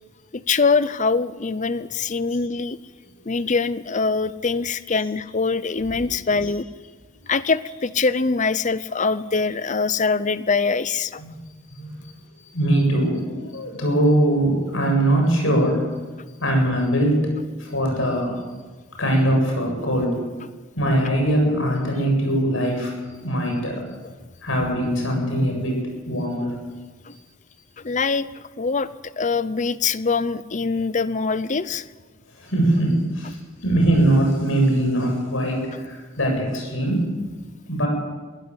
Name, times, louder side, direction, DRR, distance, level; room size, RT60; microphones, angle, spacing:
voice 1, 0.3-2.8 3.3-6.6 7.3-11.2 27.1-27.2 27.8-31.8 35.7-35.8, left 4 dB, 40° left, 16 dB, 0.7 m, -23 dB
voice 2, 12.5-15.8 16.4-17.3 17.6-18.4 19.0-20.2 20.8-22.9 23.2-23.8 24.4-26.5 32.4-33.4 33.6-37.0 37.7-37.9, right 1 dB, 70° left, 1 dB, 7.9 m, -21 dB
22.0 x 16.5 x 8.2 m, 1.4 s
head